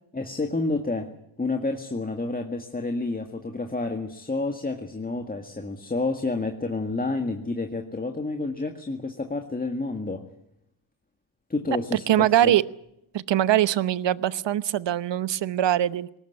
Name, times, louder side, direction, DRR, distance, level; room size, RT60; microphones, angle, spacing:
voice 1, 0.1-1.1 1.4-10.2 11.5-12.6, left 3 dB, 15° left, 4 dB, 1.8 m, -29 dB
voice 2, 11.9-12.6 13.1-16.2, right 12 dB, 60° right, 17 dB, 1.0 m, -22 dB
20.0 x 18.5 x 9.8 m, 0.79 s
cardioid pair, 95°, 49 cm